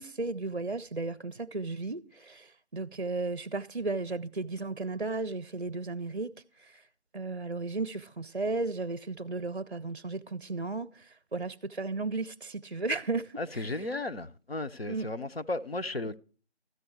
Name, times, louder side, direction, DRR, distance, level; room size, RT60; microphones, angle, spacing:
voice 1, 0.0-6.3 6.6-6.8 7.1-13.7 14.9-15.1, right 3 dB, 50° right, 0.5 m, -34 dB
voice 2, 13.4-16.2, left 2 dB, 60° left, 0.9 m, -35 dB
13.5 x 8.5 x 4.6 m
figure-of-eight pair, 170°, 34 cm